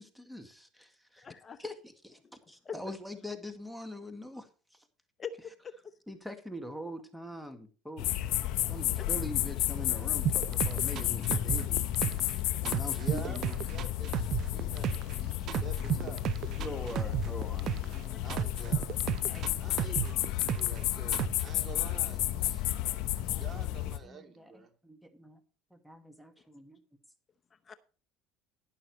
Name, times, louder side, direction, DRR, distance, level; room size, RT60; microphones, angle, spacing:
voice 1, 0.0-1.3 1.6-2.2 2.5-4.9 6.1-8.1 8.7-12.0 12.6-13.6 16.6-18.4 19.3-19.6 23.3-25.4 25.7-26.8, equal, ahead, 2.0 m, -44 dB
voice 2, 1.2-1.6 2.2-2.3 2.6-2.8 5.2-5.9 9.0-9.1 27.7-27.8, left 6 dB, 30° left, 0.8 m, -42 dB
sound 1, 8.0-24.0, left 14 dB, 65° left, 1.1 m, -32 dB
sound 2, 10.3-12.4 12.7-15.2 15.5-18.0 18.3-20.8 21.1-21.5, right 12 dB, 55° right, 0.5 m, -32 dB
voice 3, 13.0-16.9 18.2-18.9 19.6-22.7 23.2-24.7, right 6 dB, 35° right, 3.2 m, -48 dB
12.0 x 11.5 x 3.1 m
hypercardioid pair, 85°, 0 cm